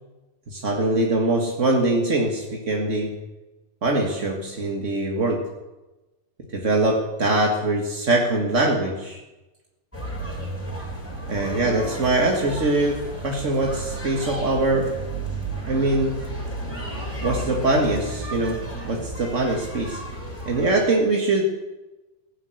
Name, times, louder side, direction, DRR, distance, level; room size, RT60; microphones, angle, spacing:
voice 1, 0.5-3.1 3.8-5.4 6.5-9.2 11.3-15.0 15.7-16.2 17.2-20.0 20.4-21.4, right 2 dB, 40° right, 0 dB, 1.0 m, -23 dB
sound 1, 9.9-20.9, right 2 dB, 5° left, 3.7 m, -33 dB
16.0 x 11.0 x 8.0 m, 1.1 s
omnidirectional pair, 3.9 m